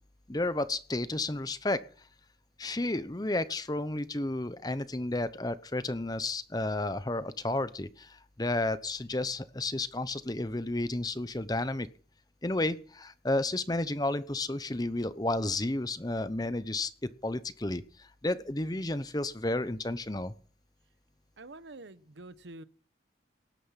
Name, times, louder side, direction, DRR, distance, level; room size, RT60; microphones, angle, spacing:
voice 1, 0.3-1.8 2.6-11.9 12.4-16.9 17.2-20.3, left 2 dB, 20° left, 0.9 m, -32 dB
voice 2, 21.4-22.6, right 2 dB, 90° right, 1.0 m, -47 dB
19.0 x 10.0 x 5.8 m
head